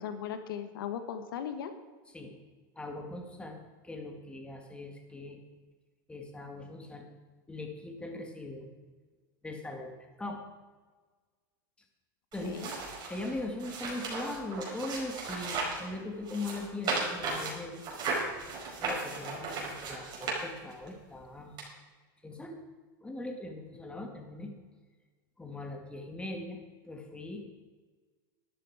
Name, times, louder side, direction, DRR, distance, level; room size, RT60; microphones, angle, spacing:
voice 1, 0.0-1.7 12.4-12.8, left 8 dB, 80° left, 8 dB, 1.4 m, -37 dB
voice 2, 2.7-5.4 6.1-7.1 7.5-8.7 9.4-9.9 10.2-10.4 12.3-12.6 13.1-17.8 18.8-21.6 22.2-22.6 23.0-24.5 25.4-27.4, left 2 dB, 10° left, 3 dB, 2.2 m, -40 dB
sound 1, 12.3-15.9 16.2-20.9 21.6-21.7, right 3 dB, 40° right, 5.0 m, -36 dB
12.5 x 12.0 x 4.9 m, 1.4 s
supercardioid pair, 120°, 11 cm